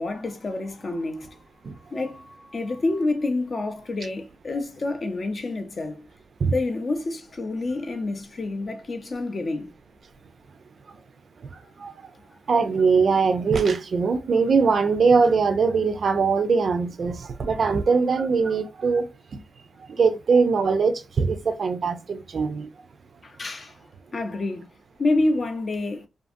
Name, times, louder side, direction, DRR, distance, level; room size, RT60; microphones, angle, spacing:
voice 1, 0.0-1.4 1.9-6.1 6.5-9.7 23.2-23.7 24.1-24.7 25.0-26.1, left 2 dB, 40° left, 0.5 m, -28 dB
voice 2, 11.5-11.9 12.5-19.4 19.8-22.7, right 5 dB, 50° right, 0.4 m, -22 dB
2.5 x 2.5 x 2.5 m
cardioid pair, 115°, 0 cm